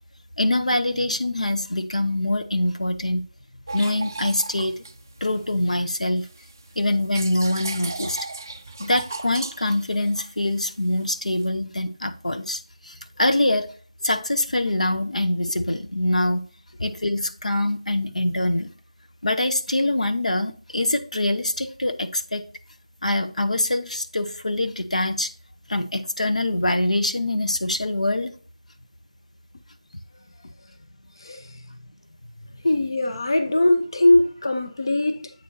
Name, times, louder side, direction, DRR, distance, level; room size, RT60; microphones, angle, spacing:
voice 1, 0.4-3.3 3.7-4.8 5.2-6.3 6.8-8.2 8.8-13.7 14.0-16.5 16.8-18.7 19.2-22.4 23.0-25.3 25.7-28.4, left 1 dB, 75° left, 0.8 m, -24 dB
sound 1, 3.7-5.7 6.2-11.5, right 3 dB, 30° right, 0.3 m, -37 dB
voice 2, 31.2-31.8 32.5-35.3, left 1 dB, 40° left, 0.7 m, -21 dB
8.2 x 6.4 x 2.7 m
figure-of-eight pair, 170°, 4 cm